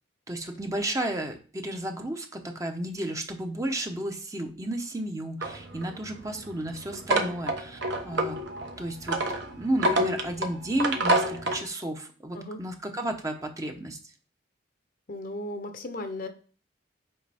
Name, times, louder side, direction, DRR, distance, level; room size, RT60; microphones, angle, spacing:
voice 1, 0.3-7.8 8.0-8.4 8.8-9.2 9.5-14.1, right 1 dB, 15° right, 4 dB, 0.8 m, -32 dB
sound 1, 5.4-11.6, right 1 dB, 60° right, 1.0 m, -28 dB
voice 2, 15.1-16.3, left 1 dB, 50° left, 7 dB, 0.9 m, -36 dB
7.8 x 5.0 x 3.5 m, 0.39 s
head